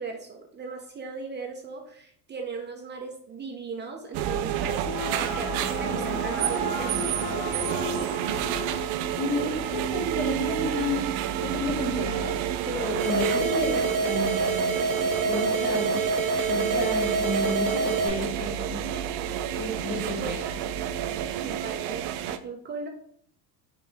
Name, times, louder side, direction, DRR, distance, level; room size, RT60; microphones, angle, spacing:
voice 1, 0.0-8.0 9.4-9.6 18.4-19.0 20.2-20.6 21.4-22.9, right 4 dB, 20° right, 2 dB, 0.6 m, -38 dB
sound 1, 4.1-22.4, right 10 dB, 60° right, 0.5 m, -30 dB
sound 2, 4.9-9.9, left 5 dB, 25° left, 0.5 m, -36 dB
voice 2, 9.2-11.1 11.4-12.4 12.7-15.0 15.2-16.0 16.5-18.9 19.6-20.3, left 2 dB, 45° left, -1 dB, 2.0 m, -31 dB
sound 3, 13.0-18.1, right 4 dB, 45° right, 1.1 m, -26 dB
4.9 x 3.0 x 3.4 m, 0.62 s
supercardioid pair, 110°, 48 cm